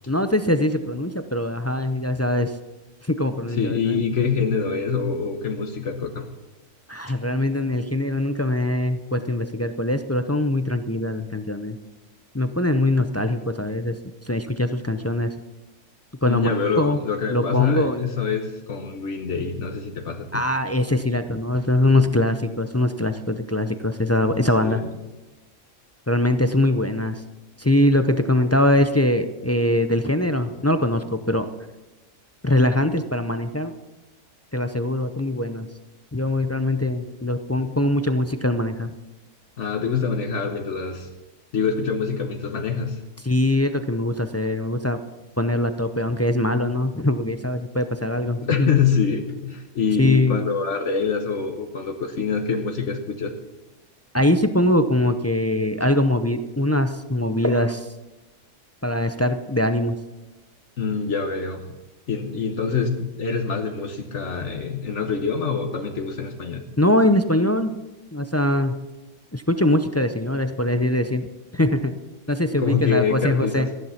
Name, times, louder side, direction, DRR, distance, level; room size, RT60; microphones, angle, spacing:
voice 1, 0.1-2.5 3.1-4.0 6.9-11.8 12.3-14.0 14.3-15.3 16.2-17.0 17.3-18.1 20.3-24.8 26.1-27.2 27.6-31.5 32.4-33.7 34.5-35.7 36.1-38.9 43.2-45.0 45.4-48.7 50.0-50.4 54.1-57.9 58.8-60.0 66.8-67.7 68.1-68.9 69.3-72.0 72.3-73.7, left 1 dB, 20° left, 9 dB, 0.5 m, -22 dB
voice 2, 3.5-6.3 16.2-20.4 24.6-24.9 39.6-41.1 41.5-43.0 48.4-53.4 60.8-61.7 62.1-66.7 72.3-73.7, left 5 dB, 70° left, 5 dB, 1.4 m, -25 dB
14.0 x 11.0 x 5.8 m, 1.1 s
omnidirectional pair, 1.3 m